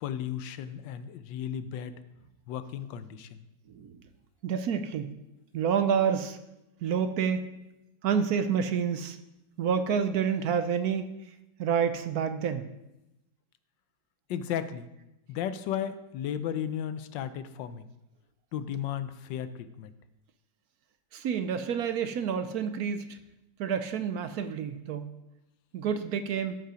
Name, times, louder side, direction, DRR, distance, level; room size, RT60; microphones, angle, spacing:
voice 1, 0.0-2.0 2.5-3.4 14.3-14.9 15.3-17.9 18.5-19.9, left 9 dB, 85° left, 12 dB, 1.4 m, -34 dB
voice 2, 4.4-5.1 5.5-6.4 6.8-7.4 8.0-9.2 9.6-11.1 11.6-12.7 21.1-23.2 23.6-25.1 25.7-26.6, right 7 dB, 65° right, 9 dB, 1.0 m, -28 dB
13.0 x 5.4 x 5.0 m, 0.90 s
omnidirectional pair, 1.9 m